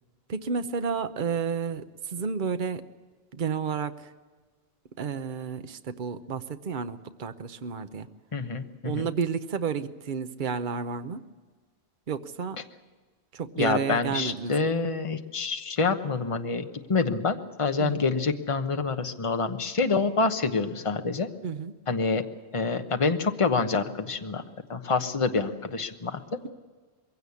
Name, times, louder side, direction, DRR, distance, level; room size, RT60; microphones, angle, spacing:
voice 1, 0.3-2.8 3.3-4.1 5.0-8.1 8.8-11.2 12.1-12.6 13.3-14.5 17.8-18.0 21.4-21.7, right 6 dB, 50° right, 9 dB, 1.0 m, -31 dB
voice 2, 8.3-9.1 13.6-21.3 21.9-22.2 22.5-24.4 24.7-26.2, left 4 dB, 30° left, 7 dB, 1.1 m, -27 dB
22.0 x 16.5 x 8.4 m, 1.4 s
omnidirectional pair, 1.1 m